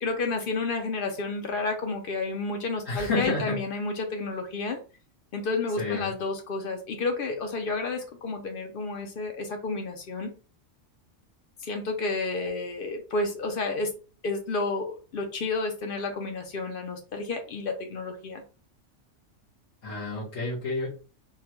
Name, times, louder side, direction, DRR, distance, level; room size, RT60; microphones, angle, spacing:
voice 1, 0.0-4.8 5.3-10.3 11.6-13.9 14.2-18.4, left 3 dB, 60° left, 5 dB, 0.6 m, -31 dB
voice 2, 2.8-3.6 5.8-6.1 19.8-20.9, left 3 dB, 85° left, -8 dB, 1.5 m, -29 dB
3.7 x 2.1 x 2.9 m, 0.35 s
omnidirectional pair, 1.3 m